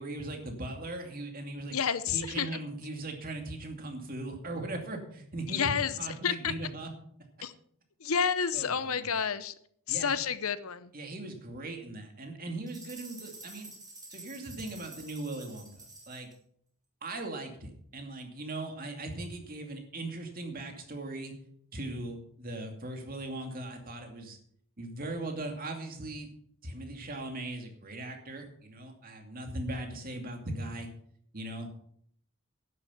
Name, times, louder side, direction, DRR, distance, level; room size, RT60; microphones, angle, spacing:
voice 1, 0.0-1.8 2.1-6.9 8.5-9.1 9.9-10.2 10.9-13.7 14.1-16.3 17.0-21.3 21.7-24.4 24.8-26.3 26.6-30.9 31.3-31.7, right 2 dB, 40° right, 4 dB, 2.4 m, -39 dB
voice 2, 1.7-2.5 5.5-5.9 6.2-6.5 7.4-7.5 8.0-9.5 9.9-10.9, left 7 dB, 75° left, 14 dB, 0.8 m, -30 dB
sound 1, 12.7-16.3, right 2 dB, 15° right, 3.6 m, -49 dB
11.0 x 9.6 x 5.6 m, 0.65 s
head